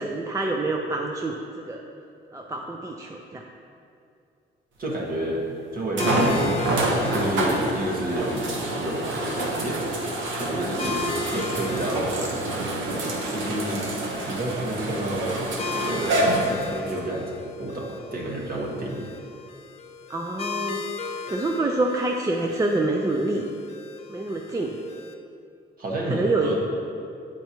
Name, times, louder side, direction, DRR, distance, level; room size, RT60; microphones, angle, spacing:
voice 1, 0.0-1.8 2.3-3.4 10.8-11.0 20.1-23.4 24.1-24.8 26.1-26.6, right 2 dB, 15° right, 1 dB, 0.4 m, -27 dB
voice 2, 4.8-5.5 5.7-8.5 8.8-9.8 10.4-11.0 11.3-12.2 13.3-13.8 14.3-15.4 15.7-19.1 25.8-26.6, right 1 dB, 45° right, -2 dB, 1.3 m, -30 dB
sound 1, 4.9-5.0 6.0-17.0 17.7-17.8 21.3-21.4, right 1 dB, 75° right, 1.0 m, -27 dB
sound 2, 6.0-25.1, left 4 dB, 30° left, 0.6 m, -37 dB
8.3 x 4.5 x 2.9 m, 2.5 s
cardioid pair, 90°, 20 cm